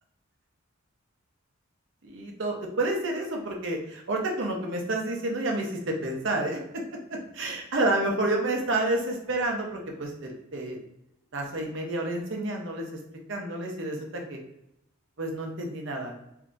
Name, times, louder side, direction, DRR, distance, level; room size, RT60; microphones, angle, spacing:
voice 1, 2.0-6.6 7.4-10.8 11.3-12.8 13.3-14.4 15.2-16.1, right 2 dB, 60° right, 1 dB, 0.7 m, -29 dB
3.4 x 2.7 x 2.5 m, 0.83 s
head